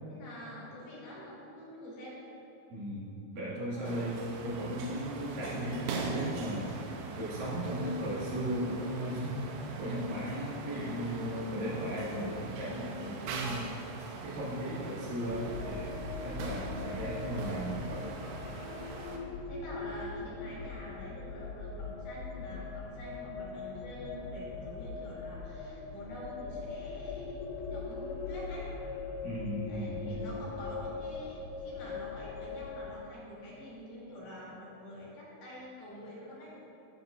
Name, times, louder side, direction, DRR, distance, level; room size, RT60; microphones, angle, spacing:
voice 1, 0.1-2.2 3.6-4.0 19.4-28.7 29.7-36.6, left 1 dB, 65° left, -7 dB, 3.7 m, -47 dB
voice 2, 2.7-9.4 9.8-13.7 14.2-18.2 29.2-30.4, equal, 60° right, -7 dB, 3.4 m, -36 dB
sound 1, 3.8-19.2, right 4 dB, 80° right, 2.7 m, -42 dB
sound 2, 15.3-33.0, left 4 dB, 90° left, 2.9 m, -41 dB
13.0 x 7.7 x 2.6 m, 2.9 s
omnidirectional pair, 4.8 m